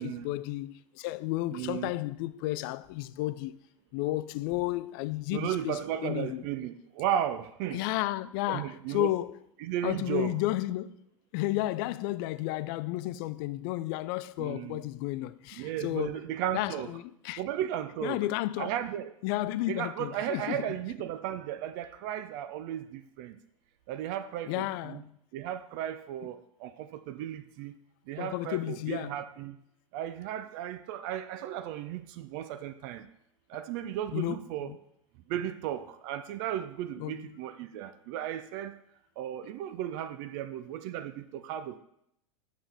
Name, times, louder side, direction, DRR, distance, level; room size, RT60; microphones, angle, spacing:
voice 1, 0.0-3.6 3.9-6.4 7.7-9.4 9.8-11.0 11.3-16.2 16.5-17.4 18.0-18.7 19.2-20.8 24.5-25.1 28.2-29.2 34.1-34.8 37.0-37.3, left 16 dB, 40° left, 0.4 m, -32 dB
voice 2, 1.5-1.9 5.3-7.8 8.5-9.1 9.6-10.3 14.4-14.8 15.6-16.9 17.4-18.2 18.6-19.1 19.7-23.4 23.9-25.0 25.3-27.8 28.1-29.6 29.9-33.1 33.5-34.7 35.3-38.8 39.2-41.8, right 11 dB, 40° right, 0.5 m, -35 dB
8.9 x 6.8 x 3.4 m
figure-of-eight pair, 85°, 17 cm